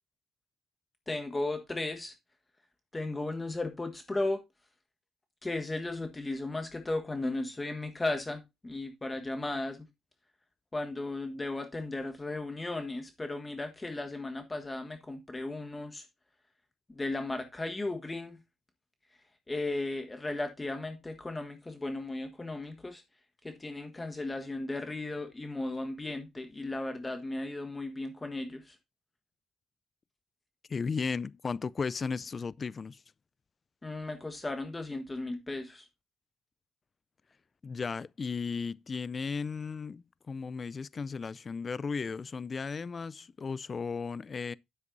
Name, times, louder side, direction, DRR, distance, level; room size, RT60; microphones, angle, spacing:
voice 1, 1.1-2.1 2.9-4.4 5.4-9.9 10.7-16.1 16.9-18.4 19.5-23.0 23.4-28.8 33.8-35.9, left 2 dB, 20° left, 1.5 m, -35 dB
voice 2, 30.7-33.0 37.6-44.5, left 5 dB, 40° left, 0.3 m, -35 dB
9.6 x 7.8 x 2.6 m
cardioid pair, 90°, 0 cm